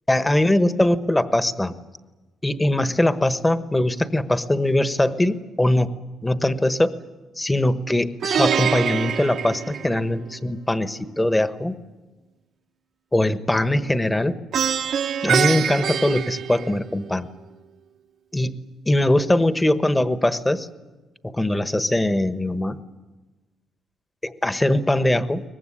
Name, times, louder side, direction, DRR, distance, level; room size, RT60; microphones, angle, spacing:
voice 1, 0.1-1.8 2.4-5.9 6.2-6.9 7.4-11.7 13.1-14.4 15.2-17.3 18.3-18.5 18.9-20.7 21.2-22.8 24.2-25.4, left 1 dB, 15° left, 11 dB, 1.2 m, -21 dB
Plucked string instrument, 8.2-10.4 14.5-17.1, right 8 dB, 70° right, 1.1 m, -24 dB
23.0 x 19.5 x 10.0 m, 1.2 s
cardioid pair, 90°, 0 cm